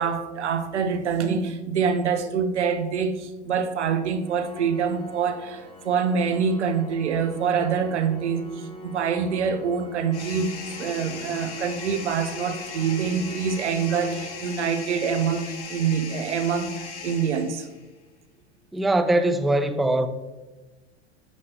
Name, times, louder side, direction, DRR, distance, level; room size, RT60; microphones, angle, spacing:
voice 1, 0.0-17.7, right 6 dB, 90° right, 1.2 m, -25 dB
Organ, 4.2-15.2, left 2 dB, 15° left, 1.3 m, -44 dB
sound 1, 10.1-17.9, left 5 dB, 80° left, 1.8 m, -38 dB
voice 2, 18.7-20.1, right 1 dB, ahead, 0.4 m, -21 dB
10.5 x 7.8 x 3.2 m
hypercardioid pair, 100°, 34 cm